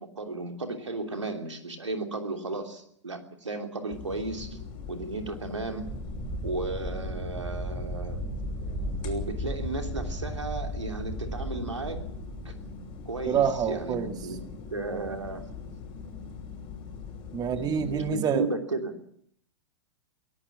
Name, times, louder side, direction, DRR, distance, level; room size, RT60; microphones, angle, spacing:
voice 1, 0.0-4.6 4.9-5.9 6.4-8.2 9.0-12.1 12.4-12.5 13.0-14.4 14.7-15.5 17.5-19.0, right 3 dB, 90° right, 4 dB, 3.1 m, -34 dB
sound 1, 3.9-18.2, left 5 dB, 35° left, 6.3 m, -42 dB
sound 2, 5.9-13.5, equal, 5° right, 6.6 m, -35 dB
voice 2, 13.3-14.2 17.3-18.5, right 8 dB, 25° right, 8 dB, 1.8 m, -27 dB
23.5 x 17.5 x 7.3 m, 0.66 s
figure-of-eight pair, 105°, 15 cm